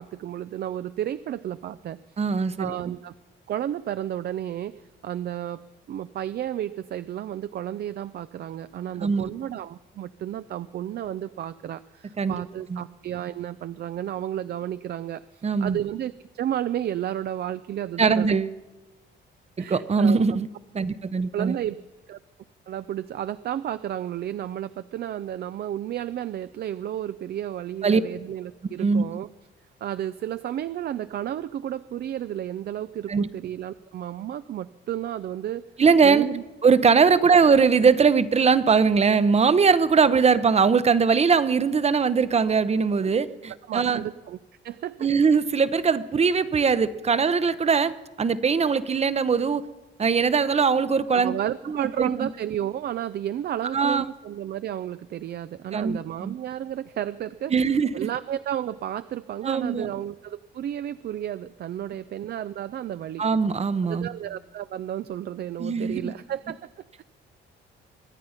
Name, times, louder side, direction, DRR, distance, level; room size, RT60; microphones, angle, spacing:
voice 1, 0.0-2.0 2.6-3.1 3.5-5.6 5.9-18.3 19.6-20.2 21.3-21.8 22.1-22.2 22.7-29.3 29.8-35.6 36.0-36.4 37.2-37.3 43.7-44.4 44.6-45.1 51.1-57.5 57.9-63.2 63.8-66.7 67.0-67.1, right 11 dB, 55° right, 14 dB, 0.4 m, -32 dB
voice 2, 2.2-2.7 9.0-9.3 12.2-12.4 12.7-12.8 15.4-15.8 18.0-18.5 19.6-20.5 20.7-21.5 27.8-28.0 28.8-29.0 33.1-33.3 35.8-36.3 36.6-44.0 45.0-49.6 50.0-51.3 51.7-52.3 53.7-54.0 55.7-56.4 57.5-58.1 59.4-59.9 63.2-64.1 65.6-66.1, right 5 dB, 30° right, 15 dB, 0.7 m, -21 dB
23.5 x 9.1 x 5.7 m, 1.1 s
cardioid pair, 90°, 20 cm